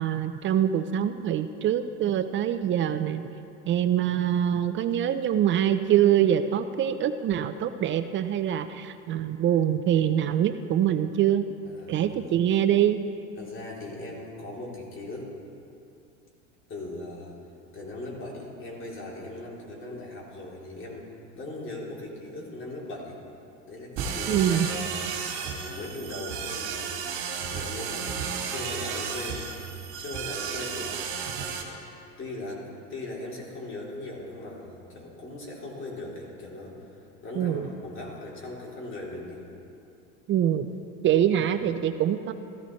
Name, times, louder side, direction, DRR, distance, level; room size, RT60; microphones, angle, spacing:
voice 1, 0.0-3.2 3.7-11.5 11.9-13.0 24.3-24.7 37.4-37.7 40.3-40.7 41.0-42.3, right 10 dB, 30° right, 10 dB, 0.5 m, -24 dB
voice 2, 11.6-12.3 13.4-15.3 16.7-17.3 17.7-21.1 21.3-23.2 23.6-24.9 25.4-29.5 29.9-30.9 31.4-31.7 32.2-32.6 32.9-39.4 41.4-41.5, left 2 dB, 30° left, -3 dB, 3.1 m, -39 dB
sound 1, 24.0-31.6, right 6 dB, 55° right, 2.2 m, -33 dB
14.5 x 13.5 x 3.2 m, 2.6 s
hypercardioid pair, 100°, 38 cm